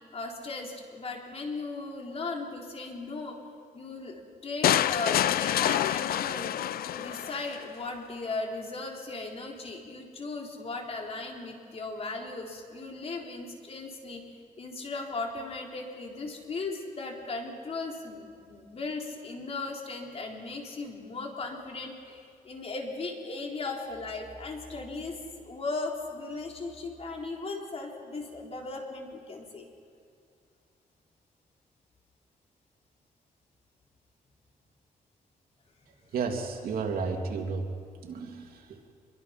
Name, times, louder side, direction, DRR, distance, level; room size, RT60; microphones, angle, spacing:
voice 1, 0.1-3.4 3.7-6.5 6.9-14.2 14.6-25.2 25.4-29.7, left 3 dB, 40° left, 1 dB, 3.7 m, -37 dB
sound 1, 4.6-7.6, left 12 dB, 85° left, 0.5 m, -27 dB
voice 2, 36.1-37.7 38.0-38.7, right 5 dB, 80° right, 3 dB, 2.8 m, -32 dB
25.5 x 23.0 x 5.9 m, 2.4 s
cardioid pair, 120°, 15 cm